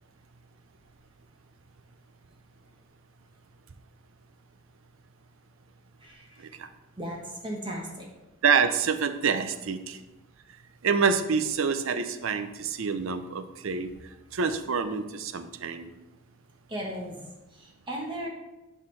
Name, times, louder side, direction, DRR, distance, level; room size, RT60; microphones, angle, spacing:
voice 1, 6.0-6.5 7.0-8.1 16.7-18.3, equal, 25° right, -1 dB, 1.1 m, -36 dB
voice 2, 8.4-10.0 10.8-13.9 14.3-16.0, right 5 dB, 75° right, 10 dB, 0.5 m, -27 dB
11.0 x 4.4 x 3.3 m, 1.0 s
head